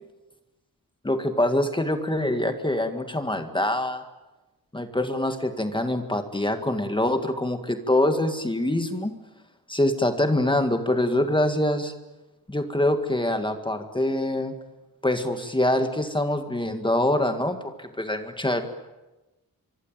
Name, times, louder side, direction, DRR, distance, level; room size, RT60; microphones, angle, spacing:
voice 1, 1.0-4.0 4.7-9.1 9.7-11.9 12.5-14.5 15.0-18.6, left 1 dB, 15° left, 7 dB, 1.8 m, -24 dB
25.0 x 25.0 x 9.0 m, 1.1 s
wide cardioid pair, 140°, 35 cm